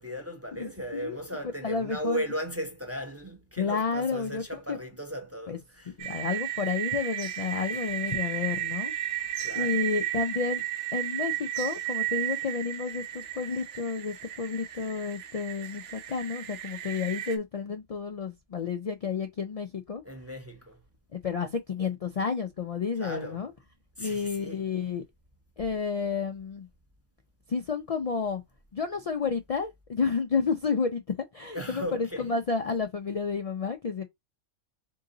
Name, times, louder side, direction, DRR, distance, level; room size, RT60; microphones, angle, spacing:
voice 1, 0.0-6.0 9.4-9.8 20.0-20.8 23.0-23.5 24.0-24.6 31.5-32.3, equal, 15° right, 0.5 m, -37 dB
voice 2, 0.6-1.2 1.6-2.2 3.6-4.4 4.7-4.8 5.5-5.6 6.0-8.9 9.5-10.6 10.9-20.0 21.1-23.5 24.0-25.0 25.6-26.7 27.5-28.4 28.7-31.0 31.3-34.0, left 5 dB, 70° left, 0.3 m, -31 dB
sound 1, 6.0-17.4, right 13 dB, 75° right, 1.0 m, -34 dB
3.8 x 2.8 x 3.8 m
omnidirectional pair, 1.3 m